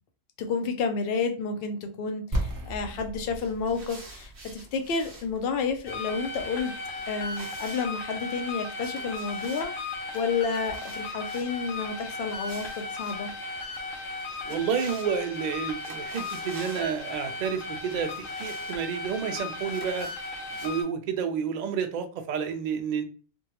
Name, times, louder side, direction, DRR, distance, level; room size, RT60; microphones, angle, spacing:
voice 1, 0.4-6.7 7.1-13.3, left 5 dB, 60° left, 6 dB, 0.7 m, -30 dB
sound 1, 2.3-8.1, right 1 dB, 20° right, 0.6 m, -37 dB
sound 2, 3.2-20.8, right 2 dB, 50° right, 0.9 m, -50 dB
sound 3, 5.9-20.8, left 3 dB, 80° left, 1.0 m, -36 dB
voice 2, 14.4-20.1 20.6-23.0, right 7 dB, 80° right, 6 dB, 0.4 m, -30 dB
3.4 x 2.2 x 2.9 m, 0.36 s
omnidirectional pair, 1.3 m